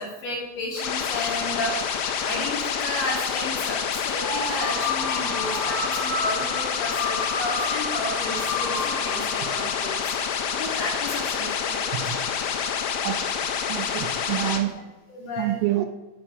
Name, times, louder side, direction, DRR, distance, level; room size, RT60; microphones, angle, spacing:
voice 1, 0.0-10.0 10.5-12.0 13.8-13.9 14.5-14.6 15.1-15.6, left 1 dB, 50° left, -3 dB, 3.6 m, -33 dB
sound 1, 0.8-14.6, left 7 dB, 85° left, 3.6 m, -28 dB
sound 2, 4.2-11.0, left 2 dB, 20° left, 2.9 m, -32 dB
voice 2, 12.9-13.2 13.7-14.7 15.4-15.9, right 13 dB, 85° right, 6 dB, 3.6 m, -27 dB
9.9 x 8.6 x 4.9 m, 1.1 s
omnidirectional pair, 5.7 m